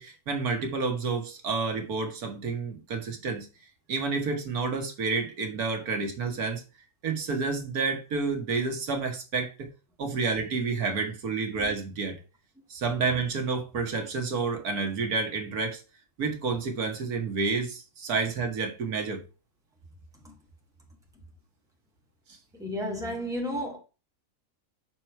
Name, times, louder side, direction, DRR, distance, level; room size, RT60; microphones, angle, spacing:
voice 1, 0.0-3.5 3.9-6.6 7.0-9.7 10.0-12.2 12.7-15.8 16.2-19.2, right 4 dB, 75° right, 1.7 m, -29 dB
voice 2, 22.6-23.8, equal, ahead, 1.7 m, -33 dB
6.2 x 4.4 x 4.4 m
omnidirectional pair, 1.6 m